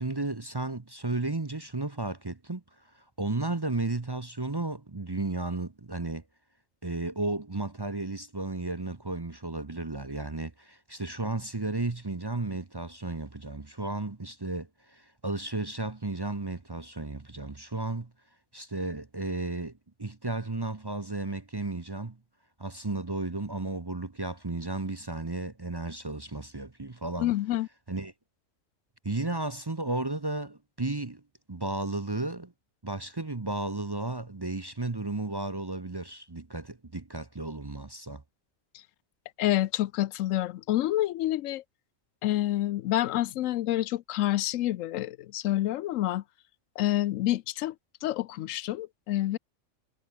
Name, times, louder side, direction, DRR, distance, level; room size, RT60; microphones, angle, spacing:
voice 1, 0.0-2.6 2.9-6.2 6.8-18.1 18.5-19.7 20.0-22.2 22.6-27.3 27.9-28.1 29.0-31.2 31.5-32.5 32.8-38.2, right 2 dB, 20° right, 0.8 m, -33 dB
voice 2, 27.2-27.7 39.4-41.6 42.2-46.2 46.8-47.7 48.0-49.4, left 14 dB, 85° left, 1.0 m, -28 dB
omnidirectional pair, 1.3 m